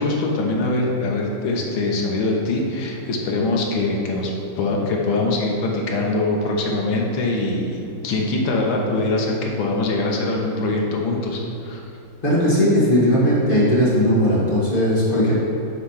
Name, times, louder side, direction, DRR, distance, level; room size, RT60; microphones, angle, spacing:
voice 1, 0.0-11.8, left 2 dB, 70° left, -1 dB, 1.7 m, -23 dB
voice 2, 12.2-15.4, equal, 25° left, -7 dB, 1.5 m, -18 dB
8.8 x 3.3 x 5.6 m, 2.9 s
omnidirectional pair, 2.3 m